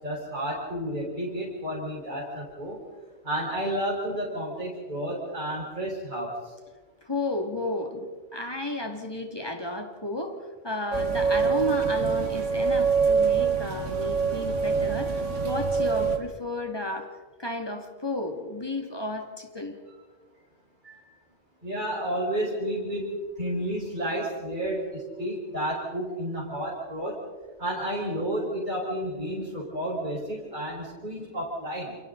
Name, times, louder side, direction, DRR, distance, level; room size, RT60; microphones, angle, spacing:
voice 1, 0.0-2.8 3.2-6.3 20.8-21.0 21.6-27.2 27.6-32.0, right 1 dB, 40° right, -5 dB, 5.1 m, -31 dB
voice 2, 7.0-10.4 10.6-17.1 17.4-19.8, left 2 dB, 20° left, 3 dB, 2.5 m, -33 dB
sound 1, 10.9-16.2, right 5 dB, 75° right, 2.2 m, -25 dB
29.5 x 29.0 x 4.0 m, 1.4 s
omnidirectional pair, 1.3 m